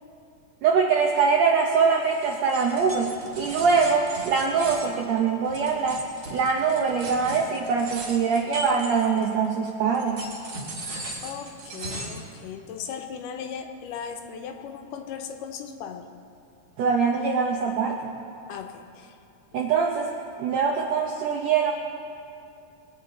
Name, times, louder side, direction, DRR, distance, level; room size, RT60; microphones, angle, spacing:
voice 1, 0.6-6.0 6.3-10.3 16.8-18.1 19.5-20.1 20.4-21.7, right 5 dB, 80° right, 1 dB, 1.5 m, -23 dB
sound 1, 2.0-9.5 9.9-12.3, right 2 dB, 50° right, 2.3 m, -38 dB
voice 2, 11.2-16.1 18.5-19.2, left 7 dB, 80° left, 5 dB, 2.3 m, -37 dB
22.0 x 9.3 x 4.1 m, 2.6 s
omnidirectional pair, 4.0 m